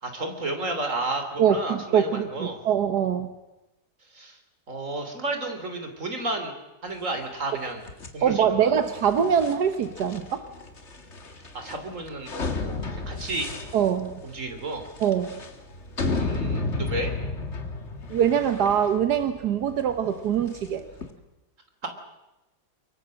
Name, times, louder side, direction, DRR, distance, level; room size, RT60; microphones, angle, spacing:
voice 1, 0.0-2.6 4.1-4.4 4.7-6.5 6.8-8.7 11.5-12.3 12.6-13.5 14.2-14.9 16.1-17.1 21.8-21.9, right 2 dB, 50° right, 5 dB, 3.7 m, -32 dB
voice 2, 1.4-3.3 8.2-10.4 13.7-14.2 15.0-15.3 18.1-20.8, right 8 dB, 85° right, 9 dB, 1.7 m, -23 dB
sound 1, 7.8-21.1, left 3 dB, 45° left, 2.2 m, -33 dB
23.5 x 23.0 x 7.6 m, 1.0 s
omnidirectional pair, 1.7 m